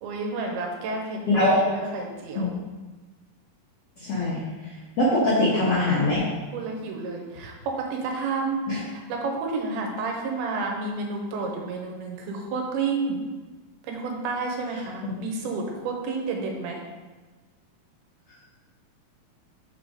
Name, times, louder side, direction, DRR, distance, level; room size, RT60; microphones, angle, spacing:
voice 1, 0.0-2.5 5.2-5.4 6.5-13.2 13.9-16.8, right 3 dB, 85° right, 1 dB, 2.7 m, -30 dB
voice 2, 1.3-1.6 2.4-2.6 4.0-4.4 5.0-6.2 8.7-8.8, left 1 dB, 80° left, -7 dB, 1.4 m, -22 dB
5.8 x 3.7 x 5.1 m, 1.3 s
omnidirectional pair, 4.5 m